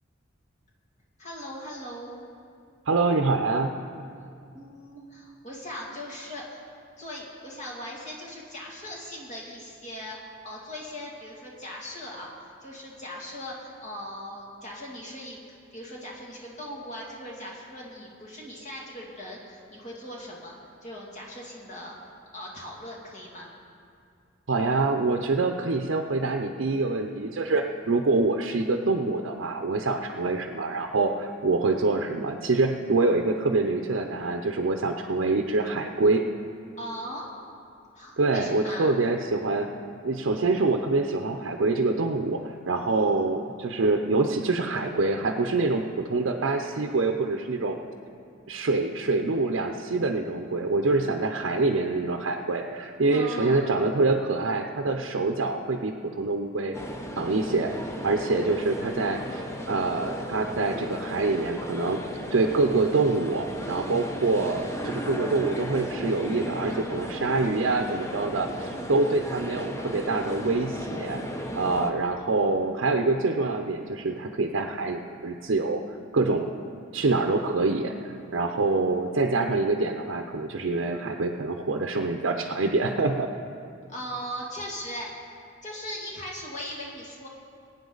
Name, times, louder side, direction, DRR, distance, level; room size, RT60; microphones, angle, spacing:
voice 1, 1.2-2.3 4.5-6.6 7.0-15.4 15.7-20.5 20.8-22.0 22.3-23.5 36.8-37.3 37.9-38.9 42.8-43.2 49.9-50.0 53.1-53.7 83.9-87.3, equal, 35° left, -3 dB, 2.4 m, -39 dB
voice 2, 2.9-3.7 24.5-36.2 38.2-39.7 40.0-45.8 46.1-47.8 48.5-56.8 57.2-57.7 58.0-62.0 62.3-71.2 71.6-75.8 76.1-76.5 76.9-83.3, right 3 dB, 70° right, 4 dB, 0.6 m, -25 dB
sound 1, 56.7-71.9, equal, 15° left, 0.8 m, -35 dB
21.5 x 9.0 x 4.0 m, 2.4 s
head